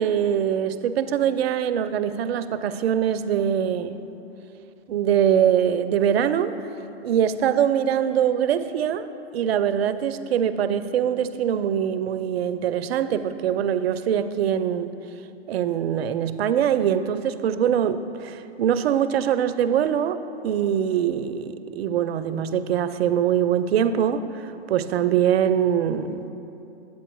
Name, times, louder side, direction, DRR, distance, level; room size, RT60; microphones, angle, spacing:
voice 1, 0.0-4.0 4.9-6.5 7.0-14.9 15.5-26.3, right 9 dB, 70° right, 13 dB, 0.5 m, -23 dB
10.0 x 8.4 x 3.0 m, 2.9 s
hypercardioid pair, 115°, 33 cm